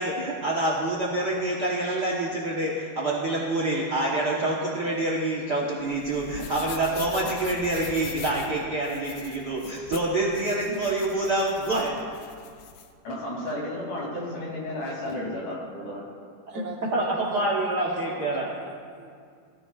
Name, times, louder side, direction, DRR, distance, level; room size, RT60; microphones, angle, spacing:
voice 1, 0.0-12.0 16.9-18.5, right 2 dB, 90° right, -4 dB, 0.9 m, -26 dB
sound 1, 5.8-12.9, left 8 dB, 85° left, 2.3 m, -42 dB
voice 2, 13.0-16.0, left 1 dB, 65° left, -4 dB, 4.2 m, -33 dB
voice 3, 16.5-17.5 17.8-19.2, right 2 dB, 65° right, -2 dB, 2.5 m, -39 dB
18.0 x 13.5 x 2.4 m, 2.2 s
omnidirectional pair, 3.8 m